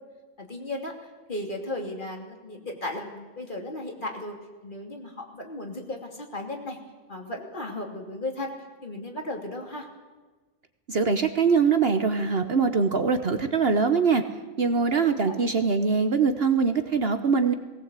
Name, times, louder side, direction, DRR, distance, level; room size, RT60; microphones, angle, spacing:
voice 1, 0.4-4.4 4.6-6.8 7.1-8.5 8.8-9.9, left 1 dB, 35° left, 2 dB, 3.0 m, -35 dB
voice 2, 10.9-14.2 14.6-17.5, right 5 dB, 50° right, 8 dB, 1.1 m, -23 dB
19.5 x 18.0 x 8.2 m, 1.3 s
omnidirectional pair, 1.4 m